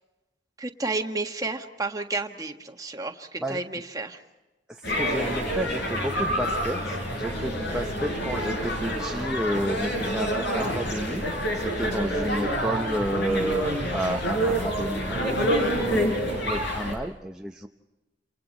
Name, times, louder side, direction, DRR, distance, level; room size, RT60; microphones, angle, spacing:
voice 1, 0.6-4.2 7.4-8.0 11.8-12.3 16.6-17.0, right 3 dB, 20° right, 4 dB, 1.6 m, -33 dB
sound 1, 4.8-16.9, equal, 65° left, 6.1 m, -27 dB
voice 2, 5.0-11.2 11.5-17.7, right 1 dB, 5° right, 1 dB, 0.7 m, -31 dB
29.0 x 28.5 x 4.3 m, 1.1 s
head